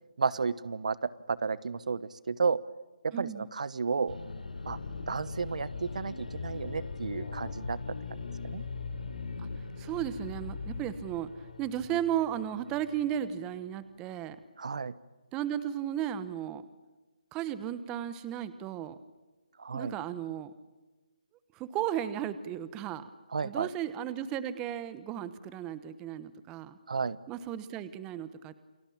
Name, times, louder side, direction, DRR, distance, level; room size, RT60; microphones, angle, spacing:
voice 1, 0.2-2.6 3.0-4.2 4.6-4.8 5.1-7.8 8.1-8.2 8.4-8.6 14.6-14.9 19.6-19.9 23.3-23.7 26.9-27.2, right 5 dB, 60° right, 18 dB, 1.1 m, -32 dB
voice 2, 3.1-3.5 9.8-14.4 15.3-16.7 17.3-19.0 19.7-20.5 21.5-23.1 23.4-26.8 27.3-28.5, right 10 dB, 15° right, 14 dB, 1.1 m, -35 dB
sound 1, 4.1-13.5, left 4 dB, 80° left, 3.4 m, -43 dB
sound 2, 4.7-5.3 5.7-10.8, left 5 dB, 55° left, 3.2 m, -42 dB
29.5 x 21.5 x 8.7 m, 1.2 s
figure-of-eight pair, 160°, 4 cm